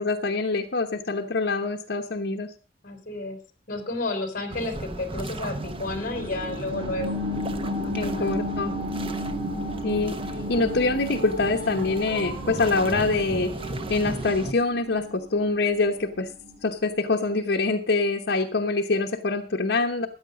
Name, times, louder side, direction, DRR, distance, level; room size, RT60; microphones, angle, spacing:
voice 1, 0.0-2.5 7.9-8.7 9.8-10.1 10.5-13.5 13.9-16.3 16.6-20.1, left 3 dB, 70° left, 1 dB, 1.1 m, -25 dB
voice 2, 2.8-3.4 3.7-7.2 7.5-8.4, left 2 dB, 50° left, 7 dB, 3.9 m, -32 dB
sound 1, 4.5-14.5, right 2 dB, 30° right, 1.0 m, -36 dB
sound 2, 5.6-16.7 17.1-17.2, left 1 dB, 85° right, 5.3 m, -34 dB
sound 3, 9.9-14.4, right 3 dB, 20° left, 5.1 m, -40 dB
14.5 x 9.6 x 5.1 m, 0.35 s
head